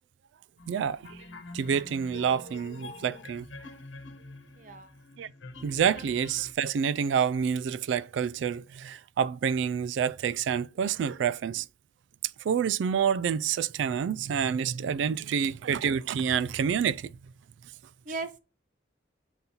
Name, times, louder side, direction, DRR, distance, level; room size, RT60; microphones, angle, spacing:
sound 1, 0.6-6.5, left 2 dB, 80° left, 1.1 m, -46 dB
voice 1, 0.7-1.2 1.5-3.5 5.2-5.3 5.6-11.7 12.4-17.1, right 7 dB, 80° right, 0.3 m, -28 dB
voice 2, 4.5-4.9 15.0-15.4 18.0-18.4, right 3 dB, 45° right, 0.6 m, -39 dB
6.9 x 4.0 x 4.2 m
head